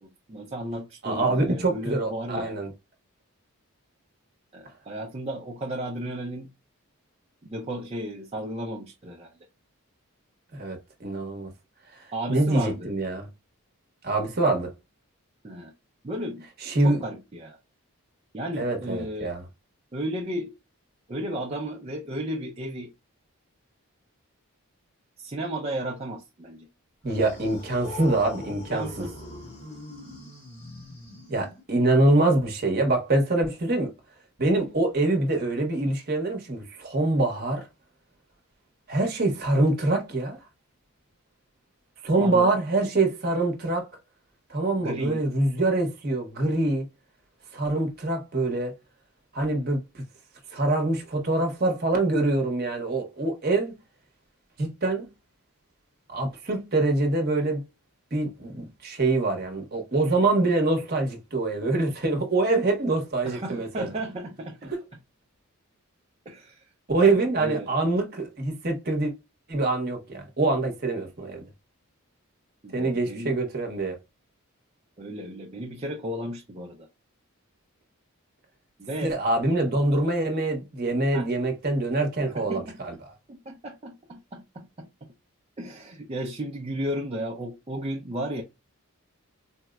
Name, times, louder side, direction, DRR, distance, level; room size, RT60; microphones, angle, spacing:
voice 1, 0.0-2.6 4.5-6.5 7.4-9.3 12.1-12.9 15.4-15.7 16.0-16.5 16.8-17.6 18.3-19.3 19.9-20.5 21.1-22.9 25.2-26.7 28.5-29.2 42.2-42.5 44.8-45.2 63.2-64.7 66.3-66.6 67.4-67.7 72.6-73.3 75.0-76.9 78.8-79.1 81.1-81.3 82.3-82.8 83.3-85.1 85.6-88.4, right 1 dB, 30° right, 0.4 m, -34 dB
voice 2, 1.0-2.7 10.5-11.5 11.9-12.0 12.3-13.3 14.0-14.7 16.6-17.0 18.5-19.4 27.0-28.9 31.3-33.9 34.4-37.6 38.9-40.4 42.0-43.9 44.5-46.9 47.5-48.7 49.3-50.0 50.5-53.7 54.6-55.1 56.1-57.6 58.1-63.9 64.6-64.8 66.9-69.1 69.5-71.5 72.7-74.0 79.0-83.0, right 2 dB, 45° right, 0.9 m, -25 dB
sound 1, 27.1-31.9, left 2 dB, 30° left, 0.9 m, -42 dB
4.3 x 2.0 x 2.3 m
head